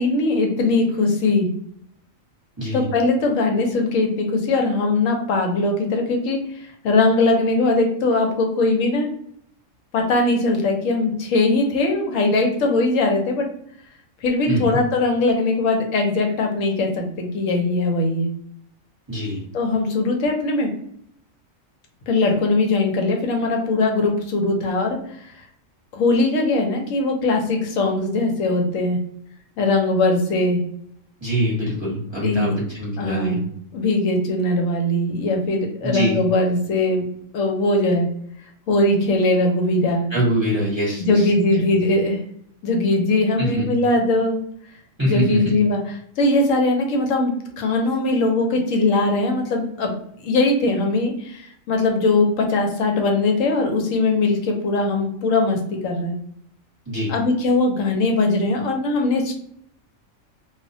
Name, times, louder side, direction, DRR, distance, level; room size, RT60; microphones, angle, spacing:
voice 1, 0.0-1.5 2.7-9.1 9.9-13.5 14.2-18.3 19.5-20.7 22.1-25.4 25.9-29.0 29.6-30.6 32.2-32.5 33.0-33.4 33.7-37.0 37.3-38.1 38.7-40.0 41.0-42.2 42.6-44.4 45.0-45.8 46.2-49.9 50.2-56.1 57.1-59.3, left 2 dB, 75° left, 2 dB, 0.9 m, -20 dB
voice 2, 14.5-14.8 19.1-19.4 31.2-33.4 35.8-36.2 40.1-41.6 43.4-43.8 45.0-45.5 56.9-57.1, equal, 25° right, -8 dB, 0.8 m, -24 dB
2.3 x 2.1 x 2.5 m, 0.69 s
omnidirectional pair, 1.4 m